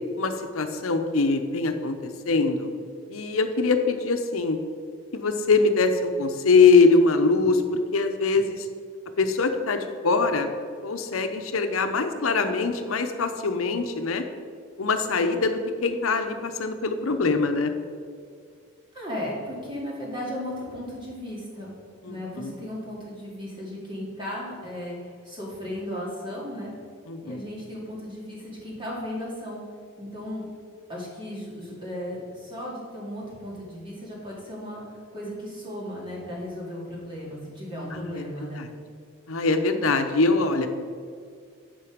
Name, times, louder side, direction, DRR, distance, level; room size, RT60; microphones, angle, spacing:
voice 1, 0.2-2.7 3.1-4.6 5.1-8.7 9.2-10.5 10.8-14.2 14.8-17.7 22.0-22.5 27.1-27.4 37.9-38.7 39.3-40.7, left 4 dB, 85° left, 7 dB, 0.8 m, -23 dB
voice 2, 18.9-21.7 22.1-26.7 27.2-29.6 30.0-30.4 30.9-34.8 35.1-38.6, left 1 dB, 25° right, -5 dB, 2.3 m, -35 dB
10.0 x 5.4 x 5.1 m, 2.2 s
head